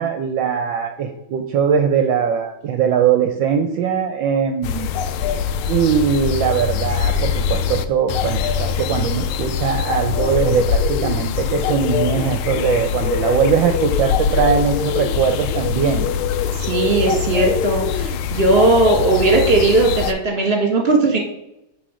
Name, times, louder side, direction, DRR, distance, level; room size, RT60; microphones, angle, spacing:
voice 1, 0.0-4.9 5.7-16.1, right 7 dB, 70° right, 6 dB, 1.2 m, -20 dB
sound 1, 4.6-20.1, left 7 dB, 80° left, 1.4 m, -22 dB
voice 2, 16.6-21.2, right 2 dB, 30° right, 1 dB, 1.4 m, -17 dB
9.4 x 3.4 x 4.8 m, 0.86 s
omnidirectional pair, 2.3 m